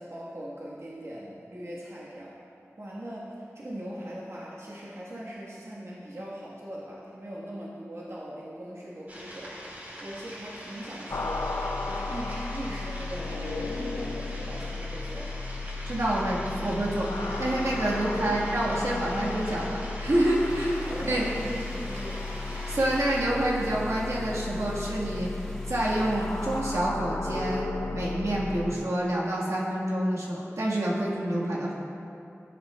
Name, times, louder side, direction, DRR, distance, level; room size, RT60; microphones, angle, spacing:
voice 1, 0.0-2.4 2.8-15.4 20.8-22.3, equal, 60° right, -7 dB, 1.3 m, -40 dB
sound 1, 9.1-23.2, equal, 35° right, 2.1 m, -43 dB
sound 2, 11.1-28.7, left 3 dB, 90° left, 0.4 m, -35 dB
voice 2, 15.8-17.1 17.4-21.3 22.7-25.3 25.7-31.7, right 1 dB, 75° right, -5 dB, 1.5 m, -27 dB
sound 3, 20.2-26.6, left 1 dB, 10° left, 1.7 m, -45 dB
14.5 x 7.7 x 2.3 m, 2.6 s
wide cardioid pair, 65°, 5 cm